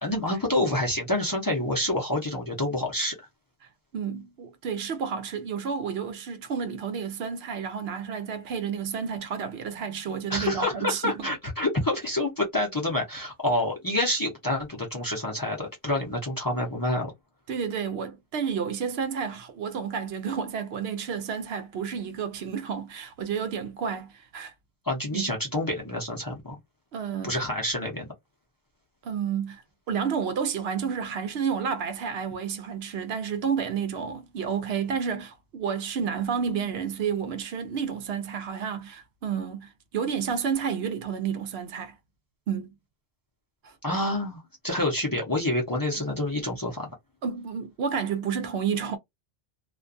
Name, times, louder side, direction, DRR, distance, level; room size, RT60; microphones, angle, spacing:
voice 1, 0.0-3.3 10.3-17.1 24.8-26.6 27.2-28.1 43.8-46.9, left 1 dB, 25° left, 0.6 m, -28 dB
voice 2, 3.9-11.3 17.5-24.5 25.1-25.3 26.9-27.4 29.0-29.6 29.9-41.9 42.5-42.7 43.6-43.7 47.2-49.0, right 7 dB, 75° right, 0.8 m, -30 dB
2.4 x 2.2 x 2.5 m
omnidirectional pair, 1.1 m